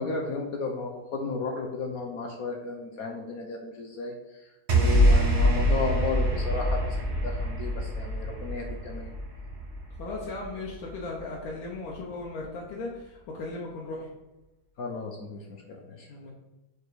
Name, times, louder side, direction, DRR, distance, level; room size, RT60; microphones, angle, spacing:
voice 1, 0.0-4.1 4.7-9.1 14.8-15.4 15.7-16.1, left 4 dB, 60° left, 2 dB, 1.1 m, -33 dB
sound 1, 4.7-11.1, equal, 40° right, 1.2 m, -25 dB
voice 2, 10.0-14.1 16.1-16.3, left 2 dB, 80° left, -3 dB, 1.8 m, -37 dB
5.2 x 4.8 x 4.7 m, 1.0 s
omnidirectional pair, 2.2 m